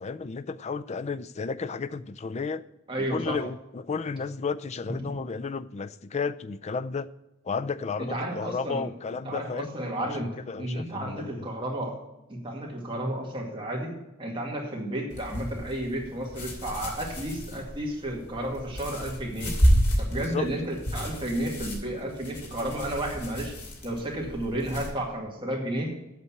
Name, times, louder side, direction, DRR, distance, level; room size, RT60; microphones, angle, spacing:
voice 1, 0.0-2.6 3.1-7.1 7.4-10.1 10.5-11.5 20.1-20.5, left 4 dB, 30° left, 0.4 m, -33 dB
voice 2, 2.9-3.4 5.0-5.1 8.0-12.0 12.3-13.9 14.2-19.5 20.0-23.5 23.8-25.9, right 1 dB, 20° right, 2.2 m, -32 dB
sound 1, 15.1-24.9, equal, 85° left, 2.7 m, -30 dB
8.2 x 6.8 x 7.0 m
head